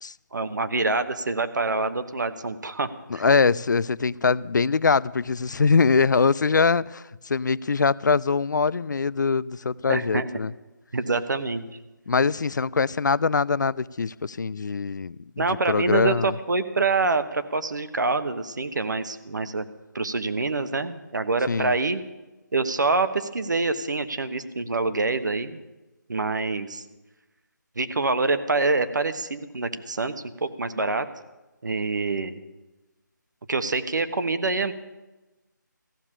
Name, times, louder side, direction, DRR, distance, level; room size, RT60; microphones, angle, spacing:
voice 1, 0.3-3.2 9.9-10.4 10.9-11.6 15.4-19.6 19.9-22.0 22.5-25.6 26.1-26.8 27.8-30.1 30.4-31.1 31.6-32.4 33.5-34.7, right 3 dB, 65° right, 1.2 m, -26 dB
voice 2, 3.1-10.5 12.1-16.3 21.5-21.7, left 5 dB, 70° left, 0.4 m, -23 dB
15.0 x 7.3 x 9.8 m
figure-of-eight pair, 165°, 10 cm